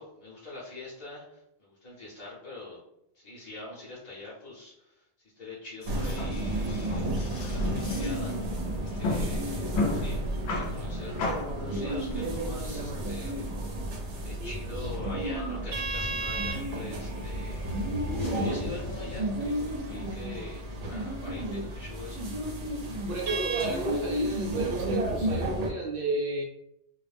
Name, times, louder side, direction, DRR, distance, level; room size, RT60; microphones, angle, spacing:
voice 1, 0.0-2.8 3.1-5.1 5.3-8.4 8.6-13.5 14.2-17.6 17.9-22.3, left 2 dB, 40° left, -7 dB, 0.8 m, -43 dB
sound 1, 5.8-19.2, left 2 dB, 70° left, 0.8 m, -37 dB
sound 2, 5.9-25.7, right 1 dB, 85° right, 0.9 m, -32 dB
voice 2, 14.4-14.9 23.0-26.4, right 2 dB, 60° right, -2 dB, 0.7 m, -33 dB
2.4 x 2.0 x 3.2 m, 0.78 s
omnidirectional pair, 1.2 m